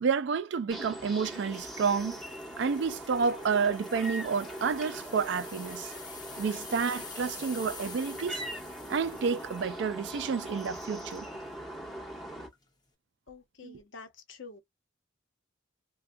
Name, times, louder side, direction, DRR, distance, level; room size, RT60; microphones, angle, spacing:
voice 1, 0.0-2.2 2.6-5.9 6.4-8.4 8.9-11.3 13.6-13.8, right 5 dB, 60° right, 0.3 m, -30 dB
sound 1, 0.7-12.5, right 1 dB, ahead, 1.2 m, -41 dB
sound 2, 1.3-11.2 11.8-12.0 12.5-12.6, left 4 dB, 20° left, 0.8 m, -48 dB
voice 2, 13.3-14.6, left 4 dB, 80° left, 0.9 m, -48 dB
2.5 x 2.2 x 2.3 m
head